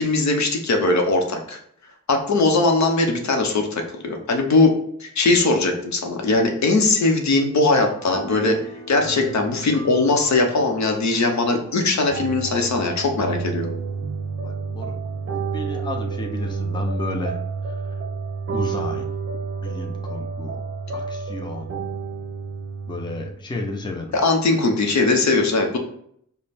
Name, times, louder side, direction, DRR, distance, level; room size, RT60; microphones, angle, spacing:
voice 1, 0.0-1.6 2.1-4.7 5.0-8.6 8.9-13.7 24.1-25.8, left 3 dB, 65° left, 3 dB, 0.8 m, -20 dB
sound 1, 8.0-23.3, right 5 dB, 50° right, 0.6 m, -31 dB
voice 2, 14.4-15.0 15.5-17.4 18.5-19.1 19.6-20.6 20.9-21.7 22.9-24.2, left 2 dB, 15° left, 2 dB, 0.5 m, -32 dB
5.1 x 2.1 x 4.1 m, 0.67 s
wide cardioid pair, 130°, 30 cm